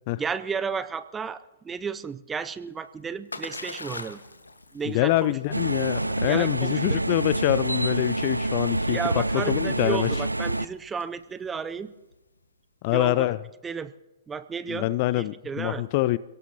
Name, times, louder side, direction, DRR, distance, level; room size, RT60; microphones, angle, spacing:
voice 1, 0.2-4.2 4.7-5.3 6.3-6.8 8.9-11.9 12.9-13.3 13.6-13.9 14.3-15.8, right 6 dB, 10° right, 0.6 m, -33 dB
Splash splatter, 2.6-12.5, left 2 dB, 80° left, 1.4 m, -44 dB
voice 2, 4.9-10.1 12.8-13.4 14.7-16.2, left 17 dB, 35° left, 0.4 m, -25 dB
sound 1, 5.5-10.6, right 2 dB, 85° right, 0.4 m, -27 dB
29.5 x 17.0 x 2.8 m
figure-of-eight pair, 115°, 0 cm